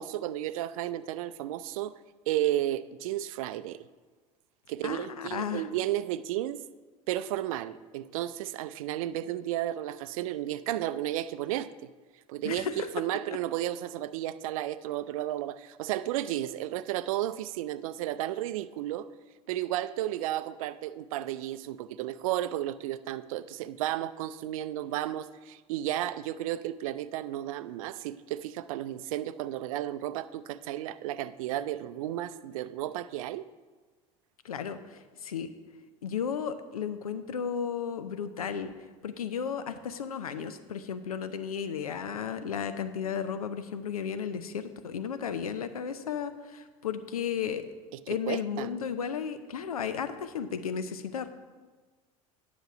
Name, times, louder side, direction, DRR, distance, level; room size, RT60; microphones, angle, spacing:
voice 1, 0.0-1.9 2.3-3.8 4.7-6.6 7.1-11.7 12.3-12.7 12.9-19.1 19.5-33.5 48.3-48.7, right 13 dB, 70° right, 0.5 m, -33 dB
voice 2, 4.8-5.7 12.4-12.9 34.4-35.5 36.0-38.7 39.0-47.7 48.1-51.3, left 7 dB, 85° left, 0.6 m, -34 dB
10.5 x 6.1 x 6.0 m
hypercardioid pair, 75°, 18 cm